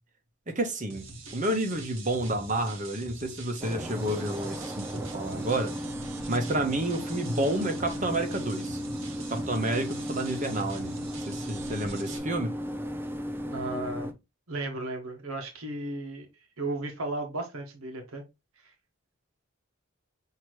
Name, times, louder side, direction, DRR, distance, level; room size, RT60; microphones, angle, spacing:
voice 1, 0.5-5.7 6.3-8.8 9.3-10.9 11.3-12.5, right 1 dB, 35° right, 0.9 m, -30 dB
sound 1, 0.9-12.2, right 3 dB, 65° right, 1.0 m, -44 dB
sound 2, 3.6-14.1, equal, 10° right, 0.4 m, -35 dB
voice 2, 13.5-14.1 14.5-16.3 16.6-18.2, right 2 dB, 85° right, 1.1 m, -35 dB
5.9 x 2.8 x 3.1 m
head